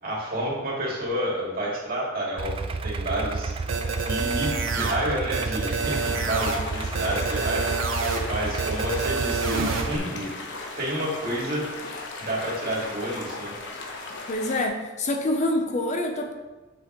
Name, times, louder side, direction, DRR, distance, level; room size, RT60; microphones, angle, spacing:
voice 1, 0.0-2.5 2.8-3.6 4.1-7.7 8.3-10.3 10.8-11.6 12.2-13.6, right 1 dB, 50° right, -4 dB, 2.1 m, -29 dB
Idling, 2.4-10.0, right 4 dB, 25° right, 0.3 m, -31 dB
sound 1, 3.7-4.9 5.3-6.6 6.9-8.2 8.6-9.8, right 4 dB, 80° right, 0.9 m, -28 dB
sound 2, 5.8-14.7, left 3 dB, 60° left, 1.0 m, -37 dB
voice 2, 14.3-16.3, left 1 dB, 35° left, 3 dB, 0.6 m, -26 dB
7.4 x 6.4 x 3.0 m, 1.2 s
head